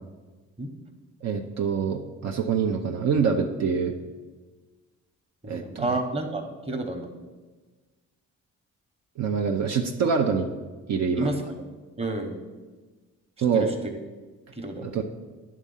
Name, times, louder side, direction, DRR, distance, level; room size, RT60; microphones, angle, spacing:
voice 1, 1.2-3.9 5.5-5.9 9.2-10.5 10.9-11.3 13.4-13.7 14.8-15.0, right 6 dB, 60° right, 3 dB, 0.6 m, -25 dB
voice 2, 5.4-7.1 11.2-11.5 12.0-12.4 13.5-13.9 14.6-15.0, right 2 dB, 20° right, 3 dB, 1.1 m, -30 dB
10.5 x 3.7 x 5.6 m, 1.3 s
cardioid pair, 90°, 30 cm